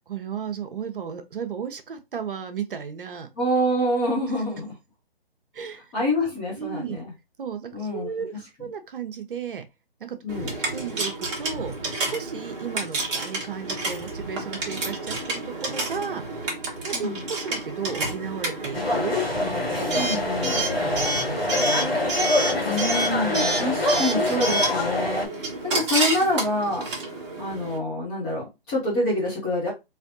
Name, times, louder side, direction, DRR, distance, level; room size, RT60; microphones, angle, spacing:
voice 1, 0.1-3.3 5.5-5.9 6.6-7.0 7.4-9.7 10.0-10.2 10.7-11.7 12.1-16.2 16.8-19.2 19.7-20.3 20.5-22.0, right 7 dB, 60° right, 0.8 m, -34 dB
voice 2, 3.4-4.7 5.9-7.1 7.7-8.1 10.2-10.5 16.9-17.2 20.0-20.6 22.6-26.8 27.4-29.7, left 1 dB, 10° left, 0.4 m, -26 dB
Coin (dropping) / Alarm, 10.3-27.8, right 2 dB, 30° right, 1.1 m, -30 dB
sound 1, 18.7-25.3, left 2 dB, 80° left, 2.0 m, -25 dB
3.3 x 2.7 x 2.6 m
hypercardioid pair, 145°, 30 cm